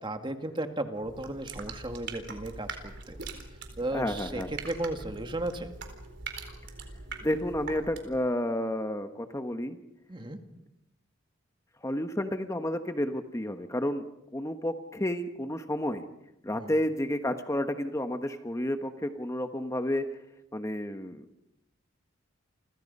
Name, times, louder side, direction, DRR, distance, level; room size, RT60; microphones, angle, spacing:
voice 1, 0.0-3.2 3.8-5.7 10.1-10.4 16.5-16.7, right 1 dB, 25° right, 6 dB, 2.0 m, -35 dB
sound 1, 1.0-8.2, right 4 dB, 65° right, 4.1 m, -42 dB
voice 2, 3.9-4.5 7.2-9.8 11.8-14.0 14.3-16.0 16.4-20.0 20.5-21.2, left 1 dB, 15° left, 7 dB, 1.2 m, -31 dB
29.5 x 25.0 x 5.5 m, 0.85 s
head